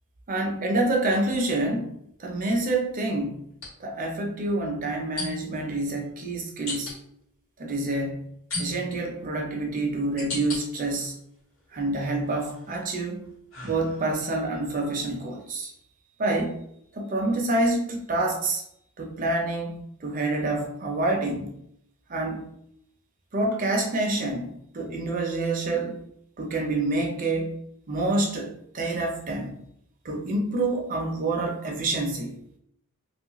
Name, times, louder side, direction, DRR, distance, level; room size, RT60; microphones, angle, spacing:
voice 1, 0.3-1.9 2.2-3.4 3.8-6.9 7.6-8.3 8.6-11.1 11.7-13.2 13.6-15.7 16.2-16.6 16.9-18.6 19.0-21.5 22.1-22.5 23.3-26.0 26.4-27.6 27.9-29.6 30.0-32.4, right 2 dB, 35° right, 1 dB, 0.5 m, -27 dB
sound 1, 3.5-3.7 5.2-5.6 6.7-7.0 8.5-9.1 9.7-10.6 11.2-11.8 12.3-14.3, left 2 dB, 65° left, 1.0 m, -36 dB
3.0 x 2.3 x 2.9 m, 0.73 s
head